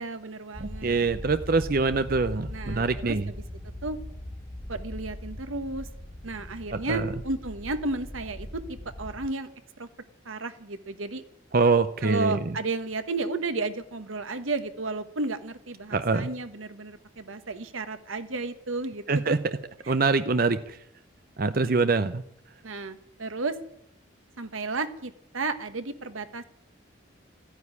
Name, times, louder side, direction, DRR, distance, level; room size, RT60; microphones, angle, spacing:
voice 1, 0.0-1.1 2.5-3.1 3.8-4.0 4.7-5.9 6.2-9.5 9.8-9.9 10.2-11.2 12.0-19.4 22.6-23.6 24.4-26.4, right 3 dB, 90° right, 10 dB, 1.3 m, -33 dB
sound 1, 0.5-9.3, left 1 dB, 20° left, 1.1 m, -40 dB
voice 2, 0.6-3.3 6.7-7.1 11.5-12.5 15.9-16.3 19.1-19.4 19.9-20.8 21.4-22.2, right 4 dB, 45° right, 11 dB, 0.6 m, -24 dB
14.5 x 9.6 x 9.7 m, 0.75 s
head